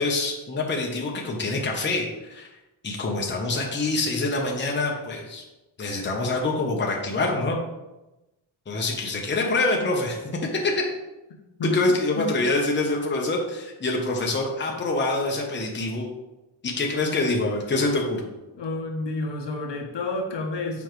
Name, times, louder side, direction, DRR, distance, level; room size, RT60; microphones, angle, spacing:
voice 1, 0.0-2.5 2.8-5.4 5.8-7.6 8.7-10.2 10.5-10.9 11.7-16.1 16.6-18.3, left 2 dB, 25° left, 0 dB, 0.8 m, -25 dB
voice 2, 18.6-20.8, left 2 dB, 65° left, 3 dB, 1.0 m, -29 dB
7.1 x 4.5 x 3.1 m, 1.0 s
wide cardioid pair, 160°, 47 cm